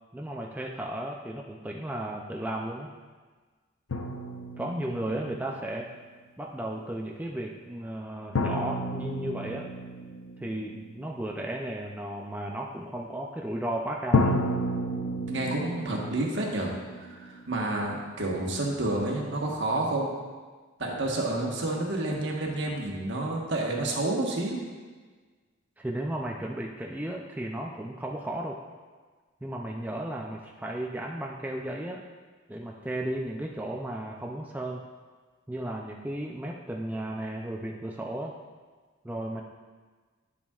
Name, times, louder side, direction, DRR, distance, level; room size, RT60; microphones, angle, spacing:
voice 1, 0.1-2.9 4.6-5.9 6.4-9.7 10.4-14.4 25.8-28.6 29.4-32.1 32.5-34.8 35.5-38.4 39.0-39.4, right 1 dB, 10° right, -1 dB, 0.4 m, -34 dB
sound 1, 3.9-5.7 8.4-11.2 14.1-18.0, left 1 dB, 85° left, 0.6 m, -31 dB
voice 2, 15.3-16.7 17.0-20.1 20.8-24.6, right 2 dB, 60° right, -1 dB, 1.3 m, -29 dB
10.0 x 7.2 x 2.4 m, 1.4 s
head